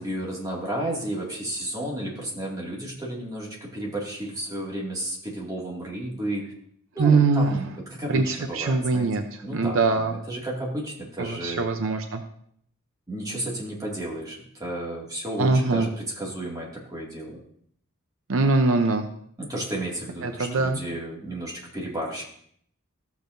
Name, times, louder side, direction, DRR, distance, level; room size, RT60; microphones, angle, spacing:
voice 1, 0.0-6.4 6.9-7.7 8.0-9.1 9.4-11.7 13.1-17.4 19.4-22.2, right 1 dB, 15° right, -3 dB, 2.1 m, -32 dB
voice 2, 7.0-7.6 8.1-10.1 11.2-12.2 15.4-15.9 18.3-19.1 20.2-20.8, right 3 dB, 65° right, 6 dB, 0.6 m, -22 dB
13.5 x 7.1 x 2.6 m, 0.65 s
head